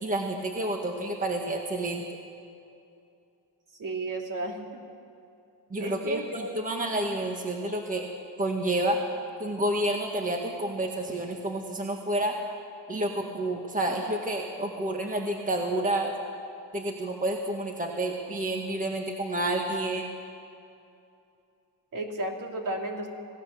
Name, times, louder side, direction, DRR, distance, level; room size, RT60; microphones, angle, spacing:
voice 1, 0.0-2.0 5.7-8.1 8.4-9.0 9.4-12.3 12.9-16.1 16.7-20.1, right 1 dB, 20° right, 2 dB, 1.6 m, -29 dB
voice 2, 3.7-4.6 5.8-6.5 21.9-23.1, right 2 dB, 50° right, 2 dB, 2.7 m, -33 dB
27.0 x 17.0 x 6.9 m, 2.6 s
cardioid pair, 140°, 42 cm